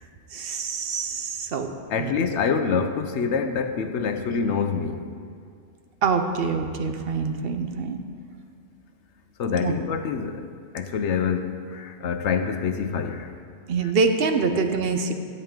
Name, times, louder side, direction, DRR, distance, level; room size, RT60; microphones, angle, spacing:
voice 1, 0.3-1.7 2.0-2.1 6.0-8.0 9.6-9.7 13.7-15.1, right 4 dB, 60° right, 6 dB, 0.9 m, -25 dB
voice 2, 1.9-5.0 9.4-10.5 10.7-13.3 13.8-13.9, left 6 dB, 75° left, 8 dB, 1.0 m, -26 dB
14.0 x 8.1 x 3.7 m, 2.2 s
omnidirectional pair, 1.2 m